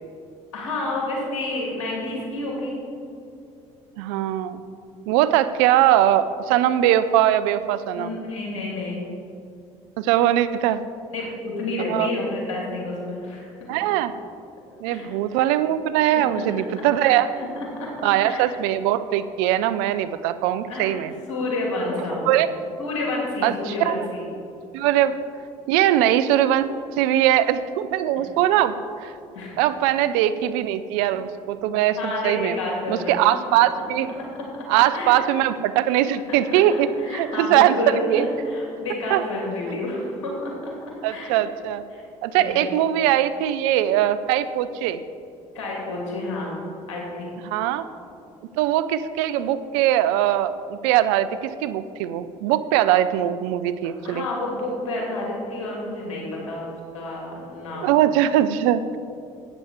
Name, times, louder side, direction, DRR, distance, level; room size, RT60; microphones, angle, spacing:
voice 1, 0.5-2.8 7.9-9.1 11.1-13.5 14.9-15.1 16.1-16.2 17.0-17.5 17.8-17.9 18.2-18.4 20.7-21.0 21.3-22.3 22.8-24.2 29.3-29.6 32.0-33.2 33.5-33.6 34.9-35.2 35.9-36.0 36.3-36.6 37.0-40.7 41.1-41.3 41.9-42.0 42.4-42.6 45.5-46.6 46.9-47.3 54.0-58.0, left 2 dB, 90° left, -3 dB, 2.8 m, -29 dB
voice 2, 4.0-4.6 5.1-8.2 10.0-10.8 11.9-12.1 13.7-14.1 14.8-17.3 18.0-21.1 22.3-22.5 23.4-24.1 24.7-25.2 25.7-26.7 26.9-28.7 29.0-29.1 29.6-32.6 32.9-34.1 34.7-36.9 37.1-37.8 38.1-38.3 39.1-39.3 39.7-39.8 41.0-41.8 42.2-45.0 47.4-47.8 48.6-54.2 57.7-59.0, right 12 dB, 80° right, 13 dB, 0.5 m, -21 dB
12.0 x 8.8 x 4.4 m, 2.6 s
hypercardioid pair, 60°, 16 cm